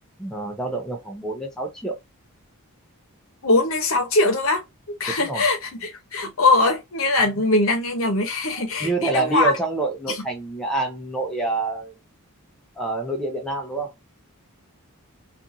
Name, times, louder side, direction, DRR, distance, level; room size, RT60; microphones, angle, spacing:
voice 1, 0.2-2.0 5.2-5.4 7.4-7.5 8.8-11.9 12.8-13.9, right 3 dB, 5° left, 0.6 m, -27 dB
voice 2, 3.4-9.5, left 2 dB, 65° left, 0.8 m, -21 dB
2.5 x 2.5 x 2.6 m
head